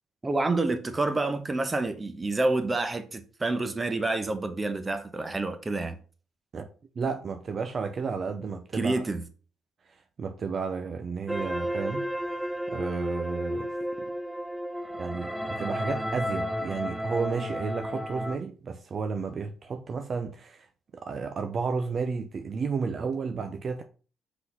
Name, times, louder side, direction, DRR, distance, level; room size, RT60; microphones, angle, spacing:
voice 1, 0.2-6.0 8.7-9.2, right 2 dB, 25° right, 1.1 m, -28 dB
voice 2, 7.0-8.9 9.9-12.1 12.7-13.7 14.0-14.1 15.0-20.7 20.9-23.8, right 5 dB, 45° right, 0.7 m, -32 dB
sound 1, 11.3-18.4, equal, 10° right, 0.6 m, -32 dB
5.5 x 4.2 x 5.5 m
cardioid pair, 90°, 0 cm